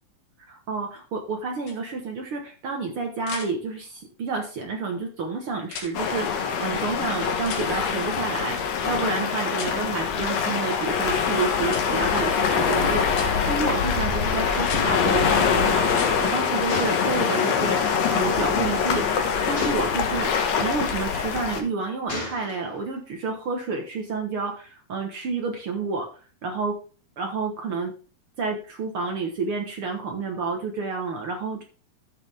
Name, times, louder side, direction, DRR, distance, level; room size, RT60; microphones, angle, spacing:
voice 1, 0.5-13.1 13.5-19.1 19.5-20.3 20.6-26.8 27.2-27.9 28.4-31.6, right 4 dB, 60° right, 2 dB, 1.4 m, -30 dB
sound 1, 1.7-1.8 3.2-3.5 5.6-5.9 7.5-7.7 9.5-9.7 11.7-11.8 13.1-13.3 14.6-14.9 15.8-16.1 18.2-18.3, left 6 dB, 80° left, 3.4 m, -36 dB
sound 2, 5.9-21.6, left 6 dB, 60° left, 2.1 m, -24 dB
Gunshot gunfire, 16.7-18.0 19.6-20.3 21.1-21.5 22.1-22.9, left 1 dB, 20° left, 2.8 m, -35 dB
12.0 x 6.6 x 3.5 m, 0.37 s
omnidirectional pair, 4.1 m